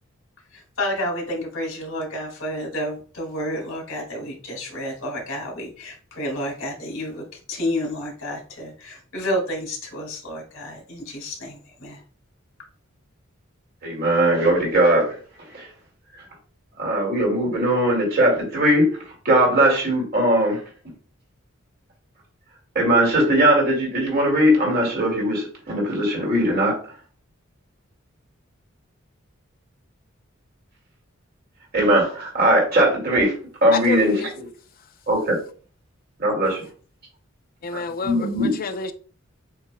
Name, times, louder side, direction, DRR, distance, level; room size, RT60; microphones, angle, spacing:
voice 1, 0.5-12.0, left 1 dB, 80° left, 2.2 m, -30 dB
voice 2, 13.8-15.1 15.5-15.6 16.8-18.9 19.2-20.6 22.7-26.8 31.7-33.3 33.6-34.5 35.1-35.4 36.2-36.6 37.7-38.6, right 1 dB, 50° right, 2.3 m, -19 dB
voice 3, 33.7-34.3 37.6-38.9, left 4 dB, 45° left, 0.5 m, -28 dB
7.3 x 2.9 x 2.3 m
head